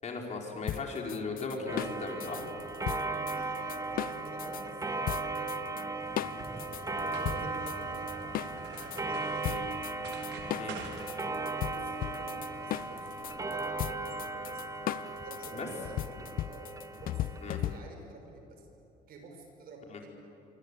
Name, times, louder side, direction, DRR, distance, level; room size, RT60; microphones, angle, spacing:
voice 1, 0.0-2.4 9.5-9.7 10.6-10.7 15.5-15.7 17.4-17.6 19.9-20.0, left 3 dB, 40° left, 1 dB, 4.9 m, -37 dB
sound 1, 0.7-4.6 5.1-5.8 6.2-9.0 9.4-18.1, left 12 dB, 60° left, 0.6 m, -37 dB
Clock, 1.7-17.8, right 3 dB, 20° right, 1.6 m, -37 dB
voice 2, 2.7-6.1 6.5-8.3 8.7-9.6 10.4-14.7 15.2-18.7 19.1-20.1, right 3 dB, 60° right, 3 dB, 6.2 m, -50 dB
sound 2, 6.0-13.1, right 4 dB, 80° right, 3.9 m, -47 dB
26.0 x 25.0 x 8.4 m, 3.0 s
cardioid pair, 110°, 17 cm